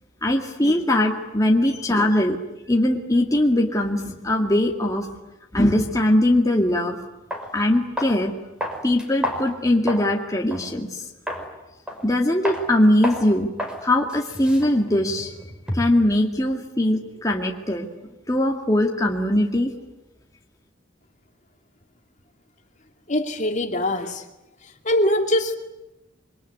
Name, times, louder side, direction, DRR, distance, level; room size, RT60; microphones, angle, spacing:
voice 1, 0.2-2.4 2.7-5.1 5.5-7.0 7.5-8.3 8.8-11.0 12.0-13.5 13.8-15.3 15.7-17.9 18.3-19.7, left 1 dB, 15° left, 0 dB, 2.2 m, -21 dB
sound 1, 6.7-6.8 7.3-7.5 8.0-8.2 8.6-10.1 10.5-10.7 11.3-11.5 11.9-12.2 12.5-12.6 13.0-13.3 13.6-13.8 14.1-16.0, equal, 5° right, 5.5 m, -30 dB
voice 2, 23.1-24.2 24.8-25.6, left 1 dB, 40° left, 5 dB, 2.6 m, -22 dB
26.5 x 24.0 x 9.5 m, 0.94 s
head